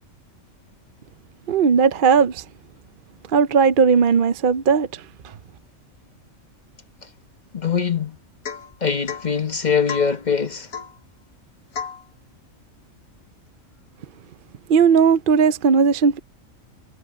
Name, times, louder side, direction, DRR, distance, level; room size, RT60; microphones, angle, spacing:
voice 1, 1.5-2.4 3.3-4.9 14.7-16.2, right 6 dB, 50° right, 0.7 m, -17 dB
voice 2, 7.5-8.2 8.8-10.7, left 6 dB, 35° left, 1.3 m, -22 dB
Domestic sounds home sounds / Chink clink / Drip, 8.4-8.7 9.1-9.3 9.9-10.2 10.7-11.0 11.7-12.0, left 6 dB, 90° left, 1.9 m, -32 dB
omnidirectional pair, 1.4 m